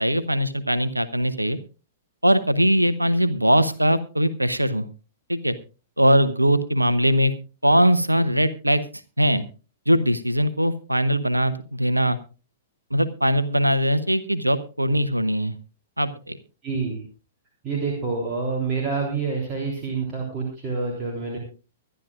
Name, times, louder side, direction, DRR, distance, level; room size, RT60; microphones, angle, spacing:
voice 1, 0.0-1.6 2.2-4.9 5.3-5.5 6.0-7.3 7.6-8.8 9.2-9.4 9.9-12.2 12.9-15.5 16.0-16.4, equal, 85° right, 14 dB, 0.9 m, -21 dB
voice 2, 16.6-17.0 17.6-21.4, right 4 dB, 20° right, -2 dB, 3.5 m, -27 dB
24.0 x 11.5 x 2.5 m, 0.33 s
figure-of-eight pair, 110°, 0 cm